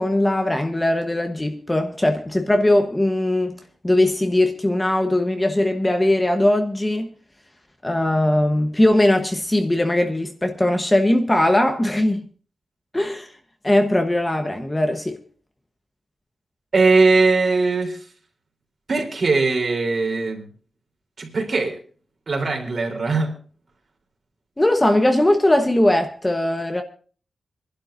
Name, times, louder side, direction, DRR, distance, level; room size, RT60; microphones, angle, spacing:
voice 1, 0.0-3.6 3.8-7.1 7.8-12.2 12.9-13.3 13.6-15.2 24.6-26.8, left 1 dB, 10° left, 1.1 m, -20 dB
voice 2, 16.7-18.0 18.9-20.5 21.2-21.8 22.3-23.4, right 3 dB, 45° right, 3.5 m, -20 dB
26.0 x 11.5 x 2.6 m
wide cardioid pair, 165°, 0 cm